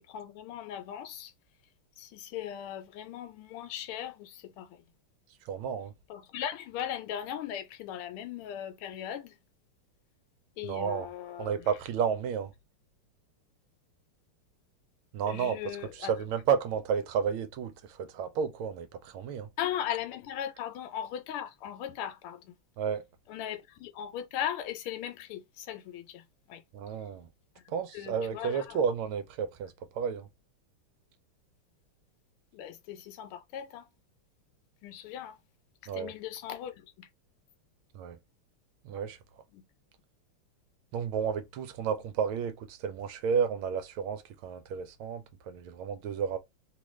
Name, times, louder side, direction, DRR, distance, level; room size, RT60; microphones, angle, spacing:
voice 1, 0.0-1.3 2.0-4.8 6.1-9.4 10.6-11.7 15.2-16.1 19.6-22.5 23.3-26.6 27.6-28.9 32.5-33.9 34.8-35.4 35.8-37.1 39.5-39.6, left 10 dB, 85° left, 1.6 m, -38 dB
voice 2, 5.4-5.9 10.6-11.1 11.4-12.5 15.1-15.6 15.9-19.5 22.8-23.0 26.7-27.3 27.7-30.3 35.9-36.1 37.9-38.2 38.8-39.2 40.9-46.4, right 7 dB, 80° right, 1.4 m, -32 dB
3.7 x 2.4 x 3.1 m
omnidirectional pair, 2.4 m